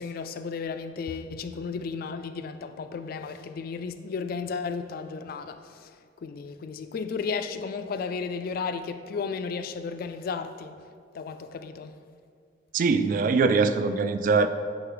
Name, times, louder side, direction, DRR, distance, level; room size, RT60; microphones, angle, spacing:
voice 1, 0.0-10.9 11.1-12.0, left 5 dB, 55° left, 0.3 m, -34 dB
voice 2, 12.7-14.5, right 4 dB, 50° right, 0.3 m, -22 dB
8.9 x 3.4 x 3.8 m
head